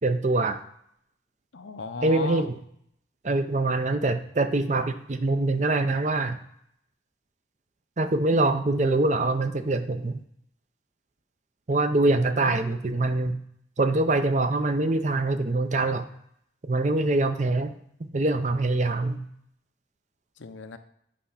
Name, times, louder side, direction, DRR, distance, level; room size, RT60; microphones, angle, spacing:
voice 1, 0.0-0.6 2.0-2.6 3.2-6.4 8.0-10.2 11.7-13.4 13.8-16.1 16.6-17.7 18.0-19.2, right 2 dB, 40° right, 9 dB, 0.5 m, -24 dB
voice 2, 1.5-2.5 12.0-12.6 20.4-20.8, left 4 dB, 80° left, 8 dB, 0.7 m, -37 dB
8.5 x 3.3 x 5.6 m, 0.72 s
head